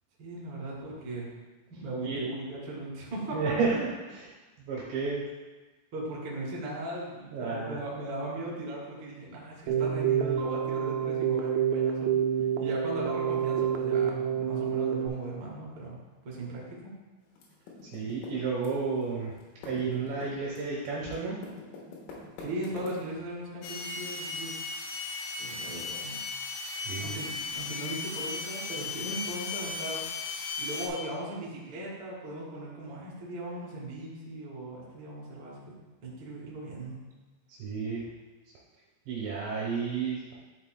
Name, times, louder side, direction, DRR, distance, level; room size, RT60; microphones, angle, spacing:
voice 1, 0.2-1.3 1.7-3.8 5.9-12.1 12.4-16.0 16.2-16.9 22.4-24.6 25.4-26.2 27.0-30.0 30.6-35.7 36.0-37.0, right 1 dB, 50° right, -5 dB, 1.6 m, -38 dB
voice 2, 3.3-5.3 7.3-7.8 17.8-19.3 19.6-21.4 26.9-27.2 37.5-38.1 39.1-40.2, right 4 dB, 75° right, -4 dB, 2.8 m, -32 dB
Keyboard (musical), 9.7-15.1, right 8 dB, 90° right, 2.6 m, -28 dB
Typing, 17.4-19.1 19.3-23.3, left 3 dB, 75° left, 3.5 m, -45 dB
sound 1, 23.6-30.9, left 4 dB, 90° left, 3.6 m, -36 dB
11.5 x 5.6 x 2.2 m, 1.2 s
omnidirectional pair, 5.9 m